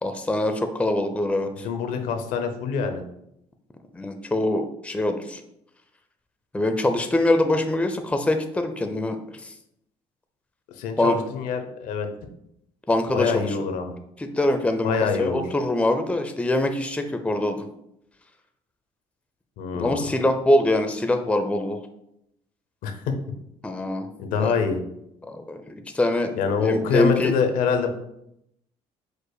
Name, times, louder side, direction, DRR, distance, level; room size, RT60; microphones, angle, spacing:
voice 1, 0.0-1.7 3.9-5.4 6.5-9.5 11.0-11.2 12.9-13.6 14.2-14.9 15.2-17.7 19.7-21.8 23.6-24.1 24.4-24.6 25.2-26.3 26.6-27.3, left 1 dB, 10° left, 7 dB, 0.5 m, -24 dB
voice 2, 1.6-3.0 10.7-12.1 13.1-13.9 14.8-15.4 19.6-20.1 22.8-23.1 24.2-24.8 26.4-27.9, left 6 dB, 75° left, 6 dB, 0.7 m, -25 dB
4.8 x 2.1 x 4.7 m, 0.78 s
supercardioid pair, 80°, 14 cm